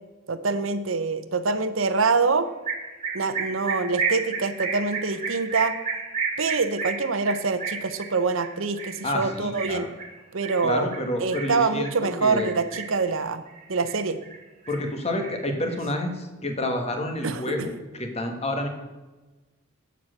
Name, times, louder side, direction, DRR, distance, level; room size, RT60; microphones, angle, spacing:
voice 1, 0.3-2.5 3.1-5.7 6.4-9.9 10.3-10.9 11.2-13.4 13.7-14.2 17.2-17.5, right 4 dB, 80° right, 11 dB, 0.8 m, -25 dB
sound 1, 2.7-12.0 12.4-13.1 13.5-14.4 14.6-16.0, right 5 dB, 35° right, 1.9 m, -32 dB
voice 2, 9.0-9.9 10.6-12.5 14.7-18.7, left 1 dB, 30° left, 4 dB, 1.4 m, -29 dB
8.2 x 7.3 x 6.4 m, 1.2 s
head